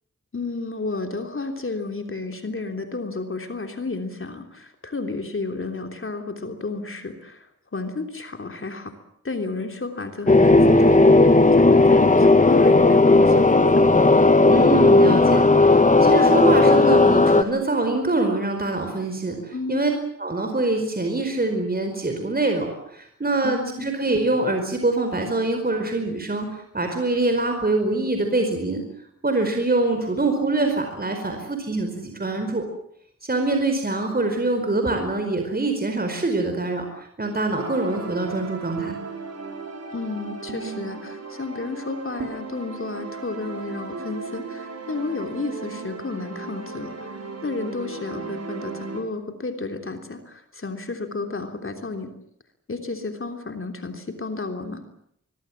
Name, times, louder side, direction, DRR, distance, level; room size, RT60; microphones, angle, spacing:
voice 1, 0.3-8.9 9.2-11.0 11.2-13.9 19.5-19.8 23.4-23.9 39.9-52.1 52.7-54.8, left 3 dB, 45° left, 5 dB, 3.4 m, -32 dB
sound 1, 10.3-17.4, left 2 dB, 25° left, 1.6 m, -15 dB
voice 2, 14.5-19.9 20.2-28.8 29.2-32.6 33.2-38.9, right 2 dB, 30° right, 5 dB, 4.9 m, -24 dB
sound 2, 37.6-49.0, right 4 dB, 60° right, 5.8 m, -36 dB
24.0 x 23.5 x 7.3 m, 0.72 s
wide cardioid pair, 90°, 29 cm